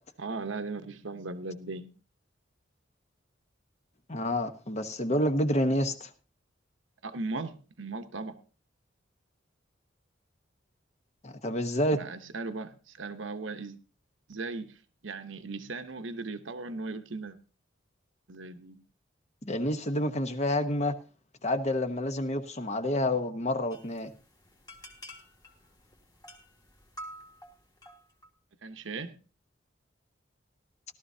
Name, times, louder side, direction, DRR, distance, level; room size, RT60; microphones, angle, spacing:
voice 1, 0.2-1.9 7.0-8.4 11.9-13.8 14.3-14.8 15.0-17.4 18.3-18.8 28.6-29.2, right 3 dB, 80° right, 1.0 m, -37 dB
voice 2, 4.1-6.1 11.2-12.0 19.4-20.9 21.4-24.1, left 1 dB, 35° left, 1.0 m, -28 dB
sound 1, 23.7-28.3, equal, 20° left, 1.8 m, -49 dB
17.0 x 12.5 x 2.8 m
head